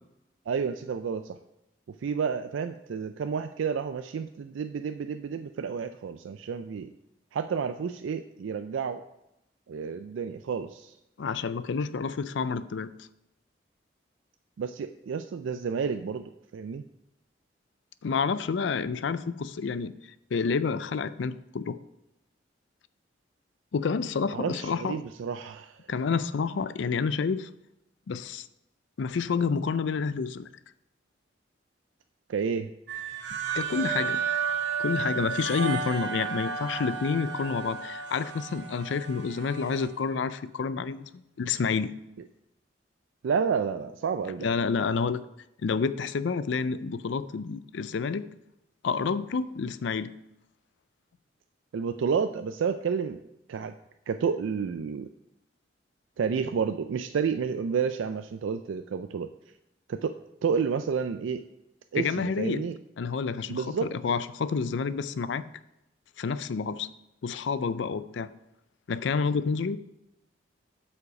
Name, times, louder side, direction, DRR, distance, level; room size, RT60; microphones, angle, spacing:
voice 1, 0.5-1.4 2.0-6.9 7.3-9.0 9.7-11.0 14.6-16.8 24.3-25.8 32.3-32.7 43.2-44.5 51.7-53.2 53.5-53.7 54.1-55.1 56.2-59.3 59.9-60.1 60.4-61.4 61.9-62.8 63.5-63.9, right 6 dB, 90° right, 9 dB, 0.4 m, -30 dB
voice 2, 11.2-13.1 18.0-19.9 20.3-21.8 23.7-25.0 25.9-27.5 28.1-28.5 29.0-30.5 33.5-34.2 34.8-41.1 41.4-41.9 44.4-45.2 45.6-48.3 48.8-50.1 62.0-62.7 63.0-65.4 66.2-66.9 67.2-68.3 68.9-69.8, left 5 dB, 75° left, 15 dB, 0.4 m, -29 dB
sound 1, 32.9-39.9, right 6 dB, 70° right, 0.8 m, -32 dB
7.9 x 5.6 x 4.8 m, 0.88 s
head